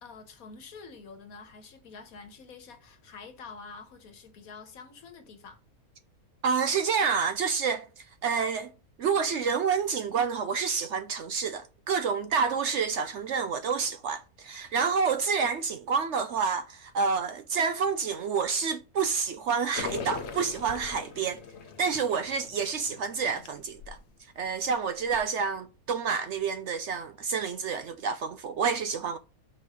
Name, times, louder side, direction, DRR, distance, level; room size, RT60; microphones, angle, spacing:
voice 1, 0.0-5.6, left 4 dB, 75° left, 1.6 m, -47 dB
voice 2, 6.4-7.9 8.2-8.7 9.0-21.4 21.8-24.0 24.4-29.2, right 6 dB, 65° right, 0.8 m, -28 dB
sound 1, 19.7-24.0 24.5-24.6 25.0-25.2, left 6 dB, 55° left, 1.0 m, -40 dB
5.4 x 5.0 x 5.1 m
omnidirectional pair, 1.6 m